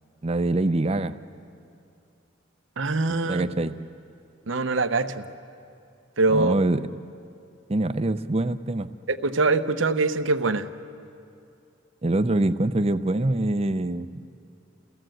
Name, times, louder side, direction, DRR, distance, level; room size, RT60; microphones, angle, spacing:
voice 1, 0.2-1.2 3.3-3.7 6.3-6.8 7.7-8.9 12.0-14.2, right 2 dB, 30° right, 11 dB, 0.6 m, -24 dB
voice 2, 2.8-3.4 4.5-5.2 6.2-6.6 9.1-10.7, right 3 dB, 70° right, 9 dB, 0.9 m, -23 dB
30.0 x 16.5 x 7.8 m, 2.6 s
head